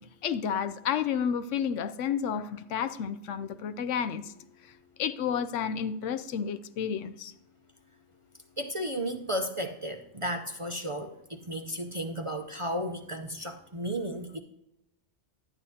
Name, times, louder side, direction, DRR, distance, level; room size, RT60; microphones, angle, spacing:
voice 1, 0.2-4.3 5.0-7.3, left 7 dB, 80° left, 12 dB, 0.9 m, -31 dB
voice 2, 8.6-14.4, equal, 35° right, 4 dB, 0.5 m, -34 dB
11.0 x 10.5 x 2.8 m, 0.86 s
omnidirectional pair, 1.3 m